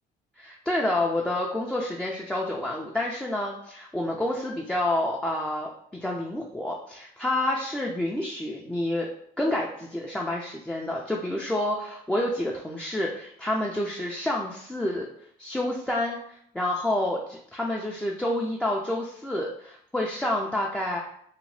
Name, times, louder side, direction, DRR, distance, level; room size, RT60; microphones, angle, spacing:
voice 1, 0.4-5.7 6.0-9.1 9.4-15.1 15.4-21.0, left 1 dB, 5° left, -2 dB, 0.3 m, -28 dB
2.8 x 2.1 x 3.0 m, 0.67 s
cardioid pair, 110°, 17 cm